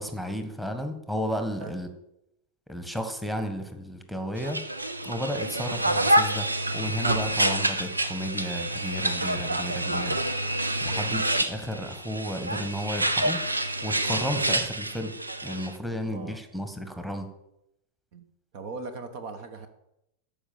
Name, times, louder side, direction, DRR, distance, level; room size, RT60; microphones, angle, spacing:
voice 1, 0.0-1.9 2.7-4.6 5.0-6.5 6.7-10.2 10.8-11.2 11.5-13.4 13.8-15.1 15.4-17.3, equal, 5° right, 6 dB, 1.5 m, -33 dB
sound 1, 4.4-15.7, right 1 dB, 80° right, 0.8 m, -27 dB
voice 2, 10.8-11.1 14.0-14.2 16.0-16.4 18.1-18.2 18.5-19.7, right 3 dB, 45° right, 9 dB, 1.1 m, -40 dB
13.5 x 5.0 x 7.8 m, 0.85 s
figure-of-eight pair, 90°, 0 cm